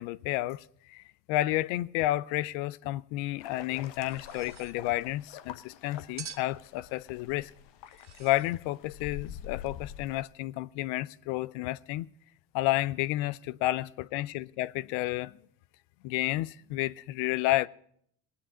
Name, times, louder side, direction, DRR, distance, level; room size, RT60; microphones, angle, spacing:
voice 1, 0.0-7.5 8.2-12.1 12.5-15.4 16.0-17.7, left 17 dB, 85° left, 0.5 m, -31 dB
sound 1, 3.4-10.2, left 10 dB, 70° left, 0.9 m, -46 dB
sound 2, 4.0-4.8 6.2-6.6 7.9-8.6, right 7 dB, 35° right, 1.0 m, -46 dB
19.0 x 8.5 x 4.9 m
supercardioid pair, 65°, 45 cm